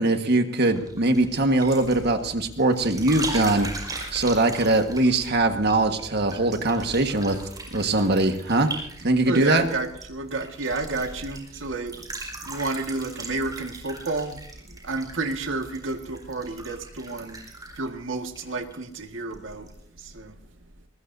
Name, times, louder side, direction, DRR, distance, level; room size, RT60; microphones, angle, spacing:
voice 1, 0.0-3.8 4.1-7.4 7.7-8.7 9.0-9.7, right 2 dB, 60° right, 6 dB, 1.6 m, -22 dB
sound 1, 0.7-19.0 19.3-19.8, right 2 dB, 20° right, 4.9 m, -39 dB
voice 2, 9.2-12.1 12.4-17.4 17.7-19.7 19.9-20.4, right 3 dB, 80° right, 5 dB, 1.8 m, -31 dB
21.5 x 19.5 x 2.7 m, 0.68 s
head